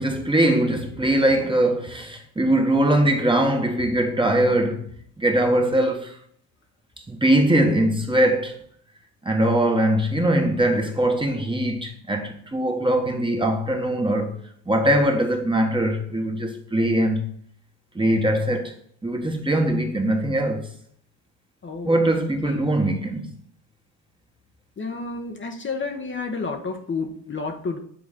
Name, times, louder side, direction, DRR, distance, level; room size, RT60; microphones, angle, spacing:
voice 1, 0.0-4.9 5.2-6.2 7.1-8.5 9.2-14.4 14.7-17.2 17.9-18.7 19.0-20.7 21.8-23.3, right 1 dB, 15° right, 1.4 m, -21 dB
voice 2, 21.6-22.1 22.4-22.7 24.8-27.8, left 4 dB, 30° left, 1.1 m, -31 dB
8.8 x 3.8 x 3.7 m
supercardioid pair, 65°, 37 cm